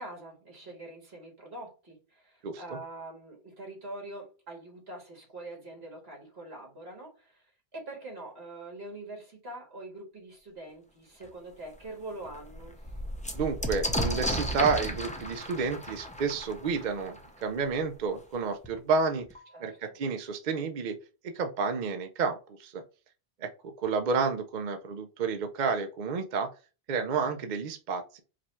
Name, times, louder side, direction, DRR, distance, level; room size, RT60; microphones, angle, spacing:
voice 1, 0.0-7.5 7.7-12.8 19.5-19.8, right 2 dB, 75° right, -1 dB, 2.2 m, -44 dB
sound 1, 11.2-11.3 11.8-11.9 12.1-17.7 18.6-18.7 19.0-19.6, equal, 10° left, 0.5 m, -34 dB
voice 2, 13.3-19.3 19.6-21.0 21.2-22.8 23.4-26.5 26.9-28.2, right 5 dB, 55° right, 6 dB, 0.6 m, -30 dB
4.9 x 2.3 x 4.2 m, 0.33 s
omnidirectional pair, 1.1 m